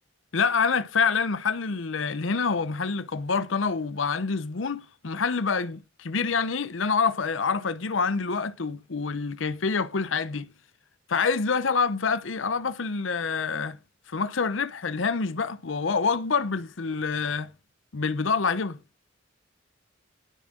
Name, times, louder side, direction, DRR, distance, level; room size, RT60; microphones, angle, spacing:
voice 1, 0.3-10.5 11.1-13.8 14.1-17.5 17.9-18.8, left 5 dB, 80° left, 0.8 m, -26 dB
18.5 x 7.2 x 3.9 m
head